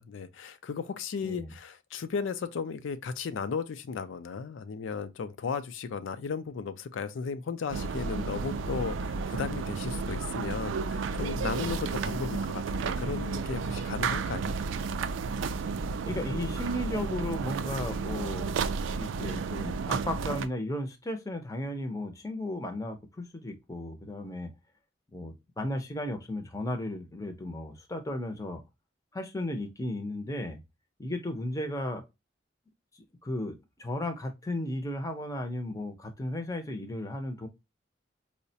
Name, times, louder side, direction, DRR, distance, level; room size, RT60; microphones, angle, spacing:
voice 1, 0.0-14.6, left 5 dB, 85° left, 0.4 m, -35 dB
sound 1, 7.7-20.5, right 4 dB, 80° right, 0.3 m, -32 dB
voice 2, 16.0-18.6 18.9-24.5 25.1-28.6 29.1-30.6 31.0-32.0 33.2-37.5, left 1 dB, 15° left, 0.5 m, -35 dB
4.7 x 2.1 x 2.6 m
head